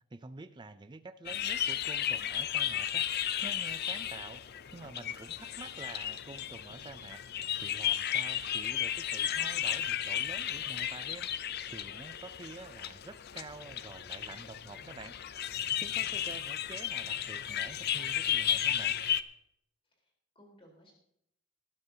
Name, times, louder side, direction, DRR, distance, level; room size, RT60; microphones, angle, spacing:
voice 1, 0.1-3.0 3.4-4.4 4.7-7.2 7.6-11.3 11.7-15.1 15.8-19.0, right 3 dB, 20° right, 11 dB, 0.4 m, -48 dB
sound 1, 1.3-19.2, left 10 dB, 45° left, 0.5 m, -34 dB
voice 2, 19.9-20.9, equal, 25° left, 0 dB, 3.9 m, -60 dB
19.5 x 11.5 x 2.8 m, 0.76 s
head